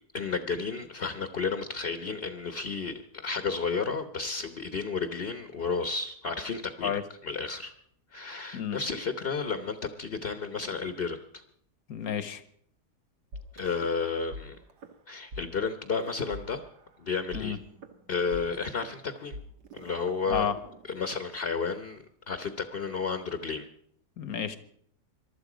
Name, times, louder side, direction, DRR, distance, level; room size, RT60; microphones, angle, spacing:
voice 1, 0.1-7.7 8.1-11.2 13.5-14.6 15.1-16.6 17.0-17.6 18.1-19.4 19.7-20.5 20.8-23.6, left 5 dB, 40° left, 8 dB, 1.1 m, -32 dB
voice 2, 11.9-12.4 17.3-17.6 20.3-20.5 24.2-24.6, left 8 dB, 65° left, 12 dB, 1.6 m, -30 dB
sound 1, 13.3-14.4 14.7-14.9 15.3-15.4 15.9-17.0 17.3-21.3, equal, 90° right, 2.0 m, -44 dB
23.0 x 12.5 x 5.0 m, 0.66 s
omnidirectional pair, 1.7 m